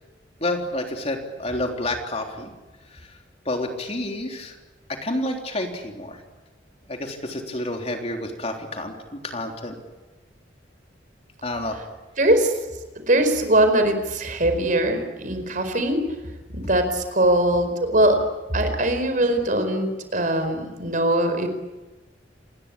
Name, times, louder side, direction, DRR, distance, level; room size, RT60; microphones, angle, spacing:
voice 1, 0.4-2.5 3.5-4.5 5.0-6.2 6.9-9.7 11.4-11.8, left 1 dB, 35° left, 3 dB, 3.6 m, -29 dB
voice 2, 12.2-12.5 13.1-16.0 16.5-18.2 18.5-21.5, right 1 dB, 45° right, 7 dB, 4.7 m, -21 dB
27.5 x 20.5 x 8.8 m, 1.2 s
head